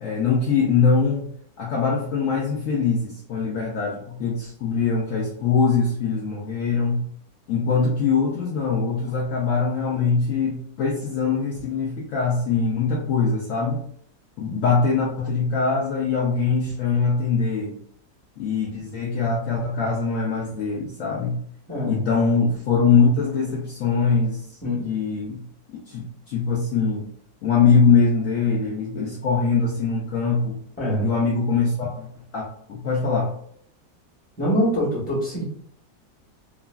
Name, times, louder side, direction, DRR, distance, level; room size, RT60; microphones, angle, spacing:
voice 1, 0.0-7.0 7.5-13.8 14.4-17.7 18.4-21.4 21.9-24.6 24.8-25.4 25.9-27.0 27.4-30.6 31.0-32.1 32.3-33.3, left 5 dB, 80° left, -3 dB, 0.7 m, -22 dB
voice 2, 21.7-22.3 24.6-24.8 30.8-31.1 34.4-35.4, equal, 5° left, -7 dB, 0.8 m, -24 dB
3.0 x 2.4 x 2.2 m, 0.65 s
omnidirectional pair, 1.9 m